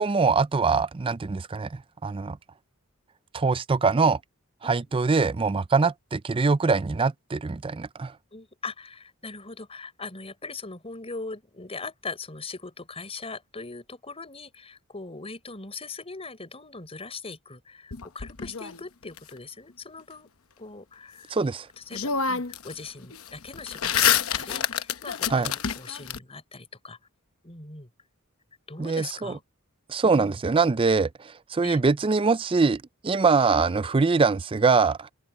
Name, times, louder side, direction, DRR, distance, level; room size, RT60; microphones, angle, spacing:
voice 1, 0.0-2.4 3.3-4.2 4.6-8.1 21.3-21.7 25.3-25.5 28.8-29.3 29.9-35.1, right 4 dB, 25° right, 0.4 m, -23 dB
voice 2, 4.6-5.1 8.3-20.3 20.6-21.3 21.8-27.0 27.4-27.9 28.7-29.4 30.0-30.4 31.6-31.8, left 3 dB, 30° left, 5.2 m, -40 dB
sound 1, 17.9-19.2 21.4-21.5 21.9-22.7 23.0-26.2, left 8 dB, 75° left, 1.0 m, -27 dB
open air
head